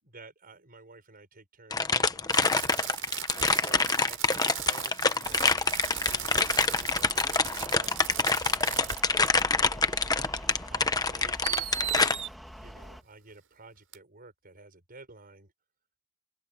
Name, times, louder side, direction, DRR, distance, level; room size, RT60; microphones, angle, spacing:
voice 1, 0.0-2.7 3.4-5.5 6.0-11.7 12.0-15.5, right 3 dB, 45° right, 6.3 m, -52 dB
sound 1, 1.7-12.1, left 4 dB, 20° left, 1.1 m, -26 dB
Fireworks, 2.3-9.0 9.3-9.4 10.5-10.6 11.4-12.3 13.9-14.0, right 11 dB, 65° right, 7.7 m, -37 dB
sound 2, 5.2-13.0, equal, ahead, 2.1 m, -45 dB
open air
head